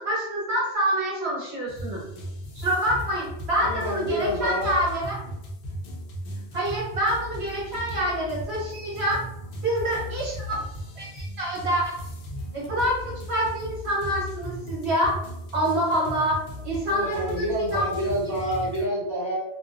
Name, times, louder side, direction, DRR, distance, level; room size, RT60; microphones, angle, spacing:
voice 1, 0.0-2.0 2.5-5.2 6.5-9.2 9.6-10.4 11.0-11.8 12.5-15.2 15.5-16.4 16.6-17.3 17.7-17.8, right 1 dB, 65° right, -5 dB, 1.3 m, -26 dB
sound 1, 1.7-18.9, equal, 60° left, 0.4 m, -37 dB
voice 2, 3.6-4.7 16.9-19.4, equal, 25° right, -10 dB, 0.9 m, -28 dB
2.5 x 2.2 x 2.4 m, 0.83 s
omnidirectional pair, 1.2 m